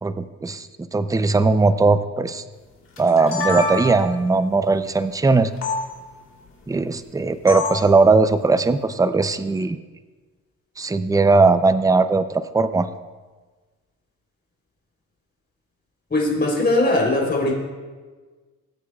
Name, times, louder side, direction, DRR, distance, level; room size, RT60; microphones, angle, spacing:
voice 1, 0.0-2.4 3.0-5.5 6.7-9.8 10.8-12.9, right 3 dB, 10° right, 12 dB, 0.4 m, -19 dB
sound 1, 3.0-4.2 5.6-5.8 7.5-7.9, left 3 dB, 50° left, 2.8 m, -26 dB
voice 2, 16.1-17.5, left 2 dB, 30° left, -1 dB, 3.4 m, -20 dB
18.0 x 8.3 x 2.3 m, 1.4 s
cardioid pair, 80°, 35 cm